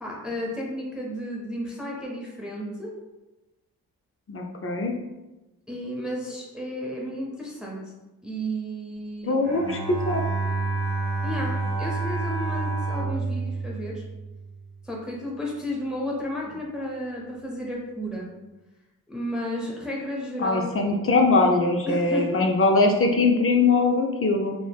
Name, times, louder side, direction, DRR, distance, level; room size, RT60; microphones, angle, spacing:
voice 1, 0.0-2.9 5.7-7.8 8.2-9.3 11.2-14.0 14.8-18.3 19.1-20.8 21.9-22.5, equal, ahead, -3 dB, 0.6 m, -33 dB
voice 2, 4.3-4.9 9.2-10.2 20.4-24.6, left 3 dB, 35° left, 2 dB, 0.4 m, -21 dB
Bowed string instrument, 9.4-14.7, right 3 dB, 80° right, 1.0 m, -29 dB
3.2 x 2.0 x 2.3 m, 1.0 s
cardioid pair, 55°, 39 cm